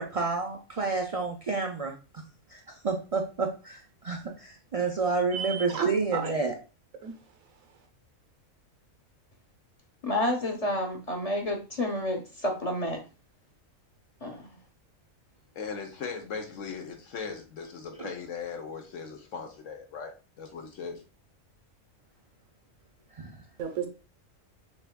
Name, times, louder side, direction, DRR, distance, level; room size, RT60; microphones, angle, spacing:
voice 1, 0.0-2.2 2.5-6.5 18.0-18.1 23.1-23.4, right 4 dB, 60° right, 0.3 m, -30 dB
voice 2, 5.3-6.3 7.0-7.1 23.6-23.9, right 7 dB, 85° right, 1.4 m, -32 dB
voice 3, 10.0-13.0 14.2-14.6, left 1 dB, 30° left, 0.9 m, -30 dB
voice 4, 15.5-21.0, left 5 dB, 70° left, 1.3 m, -38 dB
6.3 x 3.4 x 2.2 m
omnidirectional pair, 1.4 m